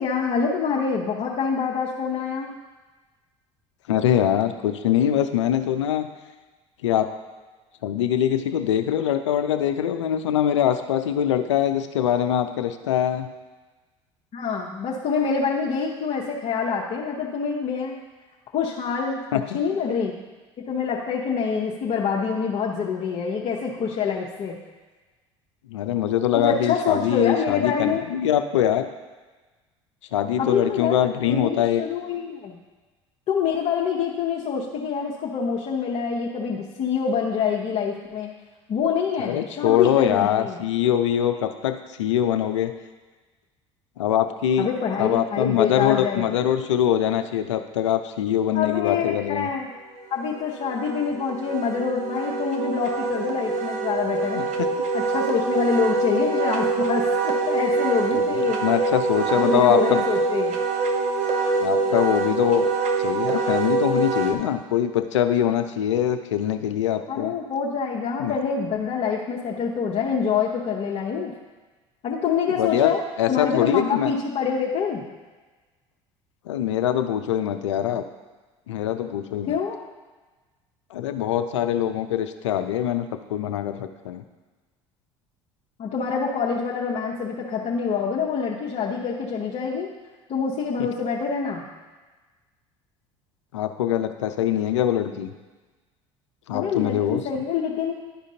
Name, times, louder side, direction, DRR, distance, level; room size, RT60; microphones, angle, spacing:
voice 1, 0.0-2.5 14.3-18.0 18.5-20.2 20.7-24.6 26.3-28.0 30.4-32.6 33.3-38.3 38.7-40.6 44.6-46.3 48.5-49.7 50.1-54.4 54.9-58.6 59.4-60.6 67.1-71.3 72.0-73.0 73.3-75.0 79.5-79.8 85.8-89.9 90.3-91.6 96.5-98.0, left 6 dB, 45° left, -3 dB, 0.9 m, -26 dB
voice 2, 3.9-6.1 6.8-7.1 7.8-13.3 19.3-19.6 25.7-28.9 30.1-31.8 39.2-42.7 44.0-44.7 45.0-49.5 54.3-54.5 58.6-60.1 61.6-62.7 63.0-67.3 68.2-68.4 72.5-74.1 76.5-78.0 78.7-79.5 80.9-84.2 90.8-90.9 93.5-95.3 96.5-97.2, left 10 dB, 85° left, 8 dB, 0.5 m, -23 dB
Wind instrument woodwind instrument, 50.0-64.3, right 3 dB, 55° right, 0.9 m, -25 dB
11.5 x 5.0 x 2.8 m, 1.3 s
hypercardioid pair, 70°, 15 cm